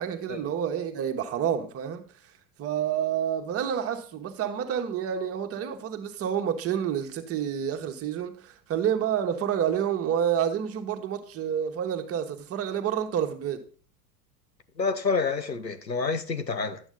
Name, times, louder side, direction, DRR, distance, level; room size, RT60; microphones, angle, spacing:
voice 1, 0.0-2.0 2.6-13.6, right 9 dB, 30° right, 1.7 m, -29 dB
voice 2, 14.8-16.8, left 4 dB, 85° left, 1.3 m, -28 dB
12.5 x 8.8 x 3.9 m
figure-of-eight pair, 85°, 49 cm